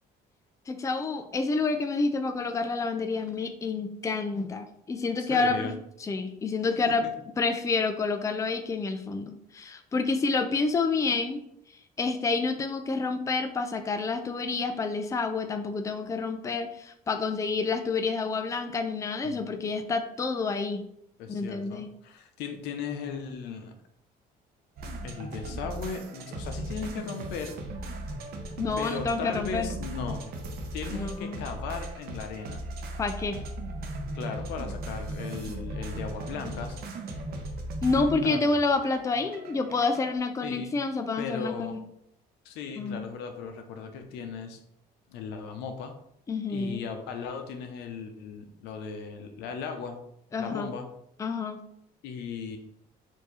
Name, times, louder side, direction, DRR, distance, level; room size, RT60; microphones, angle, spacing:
voice 1, 0.7-5.7 6.0-7.0 7.4-11.4 12.0-20.8 21.3-21.9 28.6-29.7 30.9-31.4 33.0-33.4 37.8-41.8 42.8-43.0 46.3-46.8 50.3-50.7 51.2-51.6, left 4 dB, 20° left, 7 dB, 0.4 m, -28 dB
voice 2, 5.2-5.7 19.2-19.7 21.2-23.7 25.0-27.5 28.8-30.2 30.7-32.6 34.1-36.8 38.2-38.4 40.4-40.7 41.2-41.8 42.4-44.6 45.1-45.9 46.5-50.0 50.4-50.9 52.0-52.6, left 5 dB, 90° left, 5 dB, 0.8 m, -37 dB
sound 1, 24.8-40.2, right 1 dB, 65° right, 0.8 m, -37 dB
4.6 x 2.7 x 4.0 m, 0.74 s
cardioid pair, 110°, 17 cm